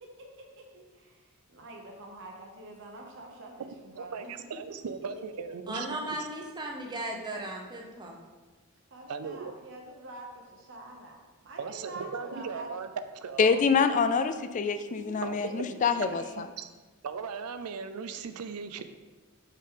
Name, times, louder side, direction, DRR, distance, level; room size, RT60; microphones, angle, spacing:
voice 1, 0.0-4.3 8.9-11.2 11.4-12.7 14.9-16.4, right 1 dB, 60° right, 0 dB, 0.9 m, -46 dB
voice 2, 4.0-6.3 9.1-9.5 11.6-12.9 13.2-13.7 15.2-15.4 15.7-16.7 17.0-18.8, right 5 dB, 80° right, 10 dB, 0.4 m, -38 dB
voice 3, 5.7-8.2, right 1 dB, 20° right, 0 dB, 0.8 m, -36 dB
voice 4, 13.4-16.5, left 5 dB, 35° left, 10 dB, 0.3 m, -26 dB
5.5 x 5.0 x 3.7 m, 1.3 s
head